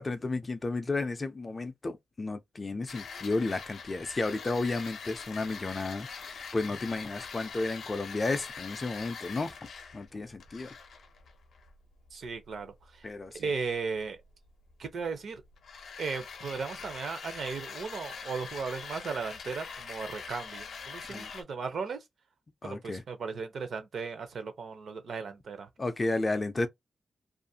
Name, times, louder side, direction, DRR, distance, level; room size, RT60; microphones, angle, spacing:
voice 1, 0.0-9.5 9.9-10.7 13.0-13.4 21.1-21.3 22.6-23.0 25.8-26.7, left 3 dB, 25° left, 0.3 m, -32 dB
sound 1, 2.9-21.4, left 5 dB, 75° left, 0.5 m, -44 dB
voice 2, 12.1-13.0 13.3-14.2 14.8-15.4 16.0-22.0 22.6-25.7, right 5 dB, 60° right, 0.6 m, -36 dB
2.4 x 2.4 x 2.7 m
wide cardioid pair, 175°, 0 cm